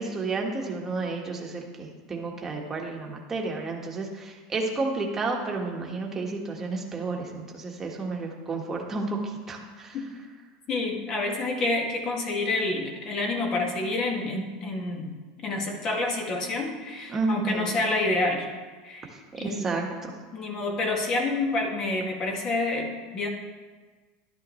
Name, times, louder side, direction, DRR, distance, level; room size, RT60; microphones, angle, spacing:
voice 1, 0.0-10.1 17.1-17.8 19.1-20.1, right 3 dB, 20° right, 0 dB, 1.5 m, -31 dB
voice 2, 10.7-15.1 15.4-18.5 18.8-19.1 19.4-19.7 20.3-23.3, left 2 dB, 30° left, 2 dB, 1.8 m, -28 dB
11.5 x 11.5 x 3.2 m, 1.4 s
supercardioid pair, 150°, 2 cm